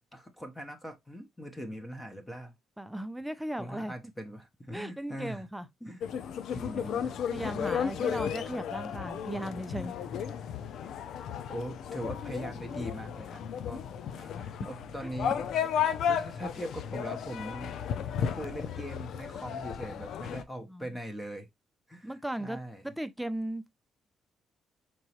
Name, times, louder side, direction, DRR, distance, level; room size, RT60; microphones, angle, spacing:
voice 1, 0.1-2.5 3.6-5.5 5.8-6.0 6.5-7.1 11.5-13.8 14.1-15.5 16.0-17.7 18.2-21.5 21.9-22.8, equal, 15° left, 0.9 m, -41 dB
voice 2, 2.8-3.9 4.7-5.7 7.3-9.9 15.0-15.1 20.7-21.0 22.0-22.6 22.8-23.7, right 1 dB, 5° right, 0.5 m, -37 dB
sound 1, 6.0-20.4, left 8 dB, 75° left, 0.4 m, -34 dB
4.5 x 3.0 x 2.9 m
cardioid pair, 90°, 0 cm